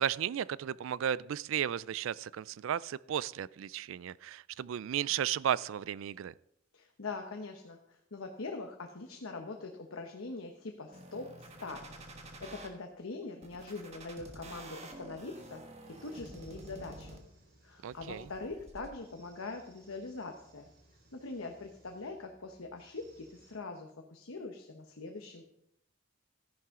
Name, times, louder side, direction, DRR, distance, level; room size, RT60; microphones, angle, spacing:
voice 1, 0.0-6.3 17.8-18.3, right 9 dB, 70° right, 20 dB, 0.3 m, -34 dB
voice 2, 6.7-11.9 12.2-15.6 16.0-17.2 17.6-20.7 21.1-25.4, left 3 dB, 75° left, 4 dB, 1.0 m, -43 dB
sound 1, 10.9-12.7 13.4-17.4 17.9-18.9, right 2 dB, 30° right, 1.3 m, -50 dB
sound 2, 15.1-23.5, right 2 dB, 50° right, 4.1 m, -64 dB
14.0 x 10.5 x 3.7 m, 0.79 s
head